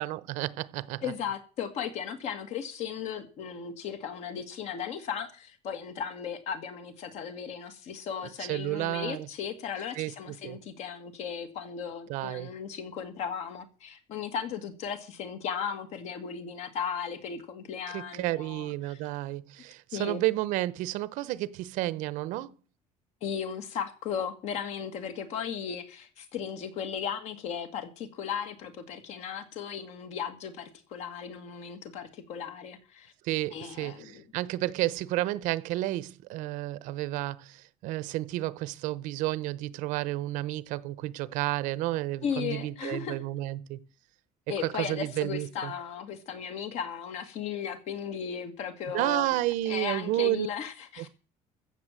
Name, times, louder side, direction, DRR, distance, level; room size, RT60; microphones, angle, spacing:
voice 1, 0.0-1.1 8.4-9.3 10.0-10.6 12.1-12.5 17.9-22.5 33.2-43.8 44.6-45.7 48.9-50.5 51.0-51.1, right 16 dB, 70° right, 0.9 m, -31 dB
voice 2, 1.0-19.0 19.9-20.2 23.2-33.1 33.5-34.2 42.2-43.2 44.5-49.4 49.7-51.1, left 7 dB, 55° left, 2.2 m, -36 dB
14.5 x 7.2 x 7.5 m
cardioid pair, 175°, 14 cm